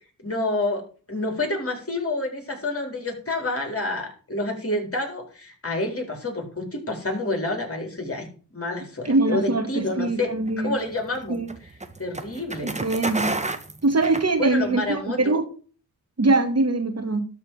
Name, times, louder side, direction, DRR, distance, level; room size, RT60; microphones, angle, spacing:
voice 1, 0.2-0.8 1.1-8.3 8.5-11.4 12.0-12.8 14.4-15.2, left 2 dB, 35° left, 2 dB, 4.4 m, -28 dB
voice 2, 9.0-10.8 11.3-11.5 12.6-13.4 13.8-15.4 16.2-17.3, right 2 dB, 40° right, 6 dB, 2.1 m, -23 dB
sound 1, 10.4-14.8, right 2 dB, 20° right, 1.4 m, -31 dB
12.5 x 4.3 x 7.7 m, 0.40 s
cardioid pair, 60°, 38 cm